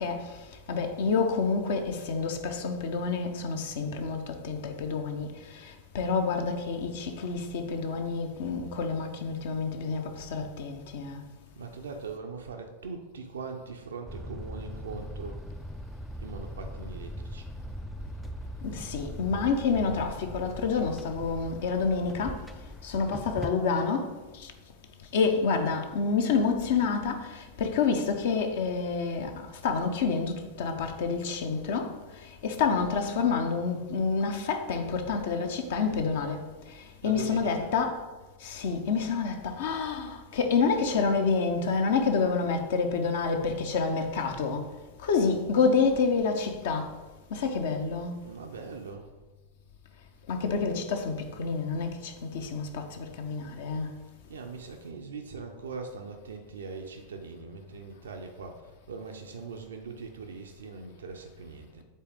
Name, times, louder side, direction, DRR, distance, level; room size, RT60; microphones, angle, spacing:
voice 1, 0.0-11.2 18.6-22.4 22.8-24.5 25.1-38.0 38.4-44.7 45.0-47.0 47.3-48.1 50.3-54.0, left 5 dB, 55° left, 0.8 m, -28 dB
voice 2, 11.6-15.4 16.2-17.5 37.0-37.8 48.2-49.1 54.3-61.8, right 4 dB, 65° right, 0.5 m, -41 dB
sound 1, 14.1-23.5, equal, ahead, 0.3 m, -40 dB
7.4 x 4.0 x 3.6 m
figure-of-eight pair, 90°, 0 cm